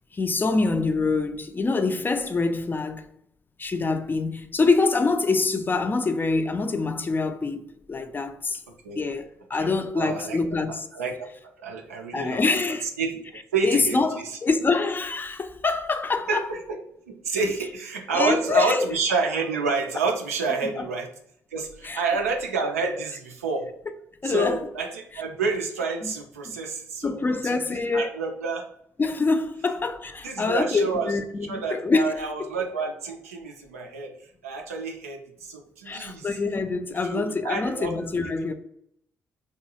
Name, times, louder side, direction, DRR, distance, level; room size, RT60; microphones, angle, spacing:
voice 1, 0.1-3.0 3.6-8.6 9.0-10.9 12.1-12.9 13.6-16.4 18.1-18.9 20.8-20.9 21.8-22.0 24.2-24.6 26.0-26.1 27.0-28.1 29.0-32.1 35.9-38.5, left 3 dB, 25° left, 0.3 m, -25 dB
voice 2, 9.5-10.4 10.9-11.3 11.6-13.2 13.5-14.4 16.3-16.8 17.1-21.1 21.5-23.7 24.2-28.7 30.2-31.1 31.5-36.3 36.9-37.9 38.2-38.3, right 4 dB, 85° right, 0.3 m, -29 dB
2.7 x 2.3 x 2.7 m
figure-of-eight pair, 40°, 8 cm